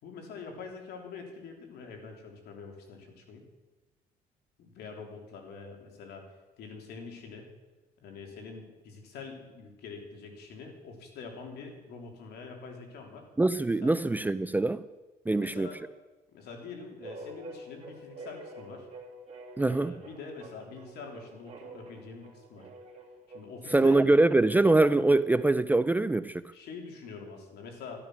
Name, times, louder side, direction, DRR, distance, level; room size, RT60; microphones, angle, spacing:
voice 1, 0.0-3.4 4.6-6.2 6.6-7.5 8.0-13.3 13.8-14.0 15.3-15.8 16.3-18.9 19.6-22.7 23.3-24.0 26.5-28.0, left 4 dB, 75° left, 3.2 m, -45 dB
voice 2, 13.4-14.8 15.3-15.7 19.6-20.0 23.7-26.4, right 2 dB, 10° right, 0.4 m, -23 dB
sound 1, 17.0-25.2, right 2 dB, 40° right, 2.9 m, -47 dB
12.5 x 12.5 x 6.2 m
cardioid pair, 110°, 17 cm